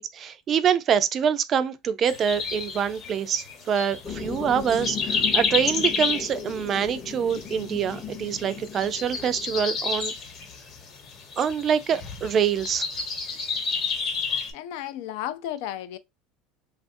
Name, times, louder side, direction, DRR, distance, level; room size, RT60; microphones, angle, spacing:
voice 1, 0.0-10.1 11.4-12.9, right 8 dB, 35° right, 0.4 m, -25 dB
sound 1, 2.0-14.5, left 5 dB, 40° left, 1.0 m, -31 dB
sound 2, 4.0-9.8, left 6 dB, 10° left, 0.6 m, -37 dB
voice 2, 14.5-16.0, left 12 dB, 70° left, 0.4 m, -33 dB
3.2 x 2.4 x 2.5 m
supercardioid pair, 140°, 0 cm